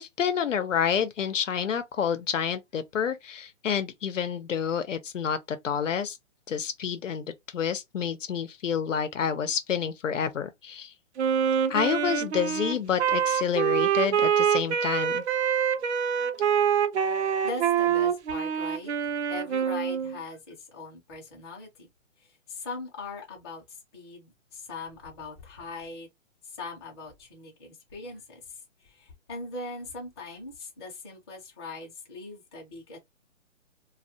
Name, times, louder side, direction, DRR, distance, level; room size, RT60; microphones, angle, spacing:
voice 1, 0.0-6.2 6.5-10.9 11.7-15.2, left 7 dB, 70° left, 0.7 m, -29 dB
Wind instrument woodwind instrument, 11.2-20.2, right 8 dB, 60° right, 0.6 m, -25 dB
voice 2, 17.4-18.9 19.3-21.9 22.2-23.6 23.9-26.1 26.4-33.0, left 3 dB, 20° left, 0.7 m, -40 dB
2.3 x 2.2 x 2.7 m
hypercardioid pair, 160°, 39 cm